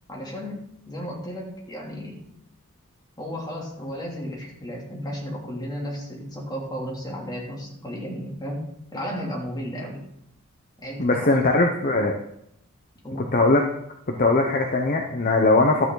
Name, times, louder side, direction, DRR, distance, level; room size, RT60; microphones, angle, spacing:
voice 1, 0.1-2.2 3.2-10.0 10.8-11.4 13.0-13.2, equal, 20° left, -2 dB, 2.9 m, -34 dB
voice 2, 11.0-12.2 13.3-13.6 14.2-15.9, left 2 dB, 40° left, 2 dB, 0.9 m, -20 dB
12.5 x 9.2 x 4.0 m, 0.75 s
head